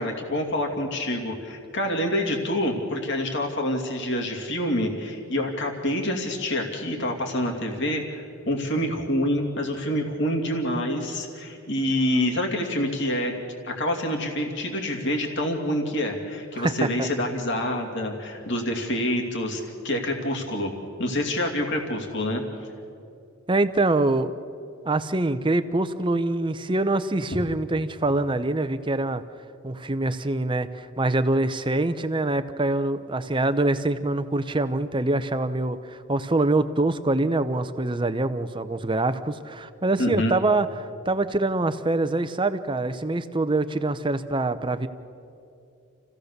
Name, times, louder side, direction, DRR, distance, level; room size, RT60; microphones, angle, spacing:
voice 1, 0.0-13.3 13.6-20.7 21.0-22.4 40.0-40.3, left 1 dB, 55° left, 1 dB, 2.6 m, -27 dB
voice 2, 16.6-17.1 23.5-24.3 24.8-29.2 29.6-44.9, right 2 dB, 25° right, 11 dB, 0.7 m, -25 dB
28.5 x 16.0 x 6.7 m, 2.6 s
head